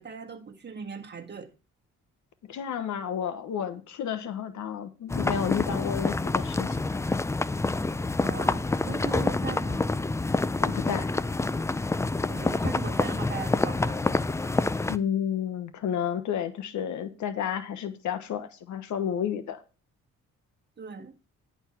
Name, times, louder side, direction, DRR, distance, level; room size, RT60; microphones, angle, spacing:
voice 1, 0.0-1.5 8.2-9.9 12.3-14.0 20.8-21.1, right 5 dB, 35° right, 1.6 m, -39 dB
voice 2, 2.5-6.8 10.6-11.1 14.9-19.6, left 8 dB, 70° left, 1.2 m, -31 dB
sound 1, 5.1-15.0, left 2 dB, 10° left, 0.4 m, -27 dB
10.5 x 4.5 x 5.8 m
cardioid pair, 90°, 30 cm